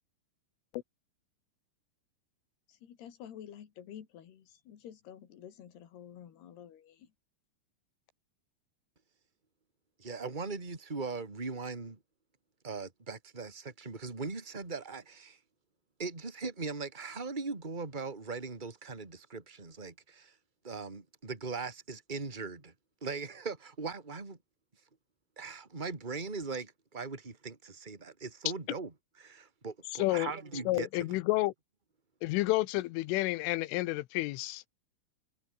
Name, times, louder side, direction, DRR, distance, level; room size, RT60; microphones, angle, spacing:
voice 1, 2.7-7.1, left 9 dB, 60° left, 4.4 m, -50 dB
voice 2, 10.0-12.0 12.6-15.4 16.0-20.4 20.6-22.7 23.0-24.4 25.4-31.1, right 4 dB, 10° right, 2.5 m, -40 dB
voice 3, 29.9-30.3 30.7-31.5 32.2-34.6, left 19 dB, 90° left, 3.4 m, -30 dB
omnidirectional pair, 5.6 m